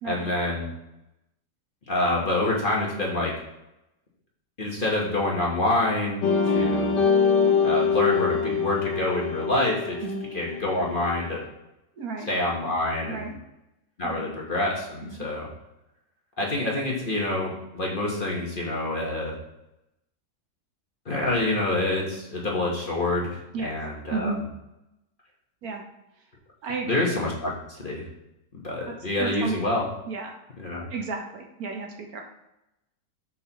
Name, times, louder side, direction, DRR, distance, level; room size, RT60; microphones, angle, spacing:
voice 1, 0.0-0.7 1.9-3.3 4.6-7.0 7.6-11.4 12.3-13.3 14.0-15.5 16.4-19.3 21.0-24.3 26.9-28.0 28.6-29.9 30.6-30.9, left 2 dB, 35° left, -3 dB, 1.2 m, -27 dB
sound 1, 6.2-10.9, left 5 dB, 85° left, 1.4 m, -24 dB
voice 2, 12.0-12.3 13.1-13.4 14.0-14.3 15.0-15.3 23.5-23.7 24.1-24.4 25.6-25.8 26.6-27.0 29.2-29.6 30.1-30.3 30.9-32.2, right 4 dB, 65° right, 2 dB, 1.3 m, -32 dB
6.4 x 5.4 x 3.0 m, 0.90 s
omnidirectional pair, 1.8 m